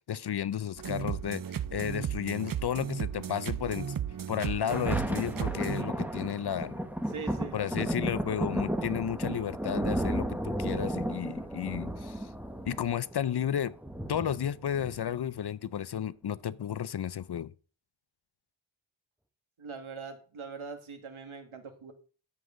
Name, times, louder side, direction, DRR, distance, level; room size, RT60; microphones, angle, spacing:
voice 1, 0.1-1.4 1.7-3.9 4.3-6.7 7.5-12.3 12.6-13.7 14.1-17.5, left 9 dB, 55° left, 0.5 m, -33 dB
sound 1, 0.8-5.8, right 9 dB, 45° right, 0.5 m, -35 dB
Thunder, 4.4-15.4 16.0-16.1, right 1 dB, 5° right, 1.1 m, -33 dB
voice 2, 7.1-7.6 19.6-21.9, right 5 dB, 70° right, 1.9 m, -42 dB
13.0 x 7.8 x 3.8 m
wide cardioid pair, 125°, 50 cm